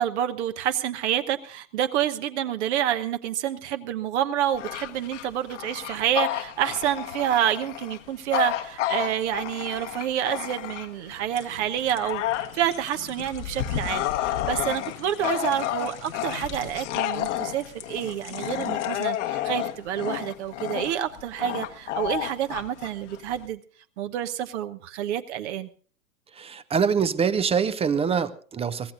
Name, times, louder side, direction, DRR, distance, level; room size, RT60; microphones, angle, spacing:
voice 1, 0.0-23.6 24.0-25.7, right 10 dB, 55° right, 9 dB, 1.1 m, -28 dB
Bark / Growling, 4.5-11.1 11.6-23.5, left 13 dB, 60° left, 1.4 m, -31 dB
sound 1, 11.0-20.9 21.4-21.6, left 8 dB, 80° left, 1.4 m, -46 dB
voice 2, 26.3-28.9, right 6 dB, 15° right, 14 dB, 0.6 m, -24 dB
23.5 x 16.0 x 2.6 m, 0.43 s
figure-of-eight pair, 95°, 41 cm